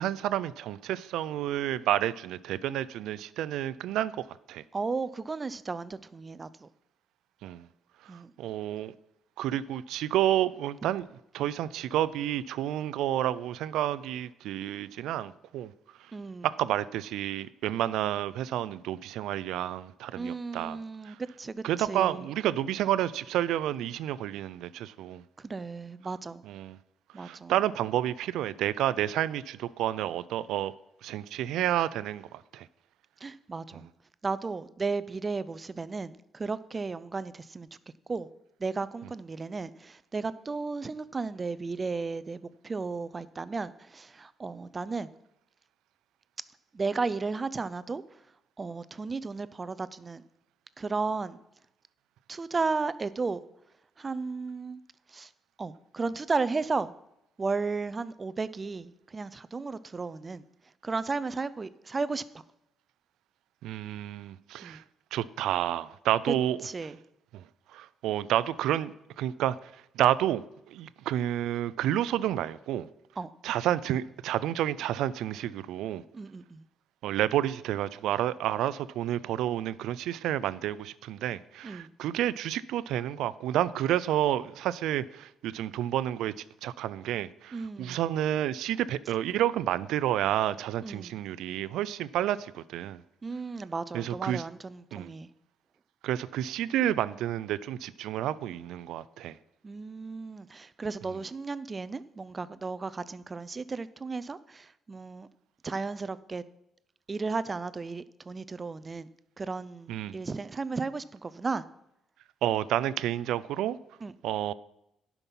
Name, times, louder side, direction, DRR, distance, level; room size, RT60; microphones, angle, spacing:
voice 1, 0.0-4.1 4.5-4.6 7.4-7.7 8.4-8.9 9.4-11.1 11.3-15.7 16.4-20.8 21.0-21.2 21.6-25.2 26.5-26.8 27.2-30.7 31.0-32.7 63.6-64.8 65.1-66.6 67.3-67.4 67.7-69.7 70.0-72.9 73.4-76.0 77.0-86.3 86.6-93.0 93.9-94.4 94.9-95.1 96.0-99.4 109.9-110.1 112.4-113.8 114.2-114.5, right 12 dB, 85° right, 0.4 m, -30 dB
voice 2, 4.7-6.7 8.1-8.3 16.1-16.5 20.2-22.3 25.4-26.4 27.1-27.5 33.2-33.9 34.2-37.7 38.1-38.3 38.6-45.1 46.7-48.2 48.6-50.2 50.8-51.4 52.3-53.4 54.0-54.8 55.1-55.3 55.6-56.9 57.4-60.5 60.8-62.2 64.6-64.8 66.3-66.4 66.6-67.0 73.2-73.3 76.1-76.7 81.6-81.9 87.5-88.0 90.8-91.2 93.2-95.3 99.6-105.3 105.6-106.4 107.1-111.6 114.0-114.1, right 4 dB, 30° right, 0.5 m, -34 dB
11.0 x 5.9 x 5.5 m
cardioid pair, 90°, 0 cm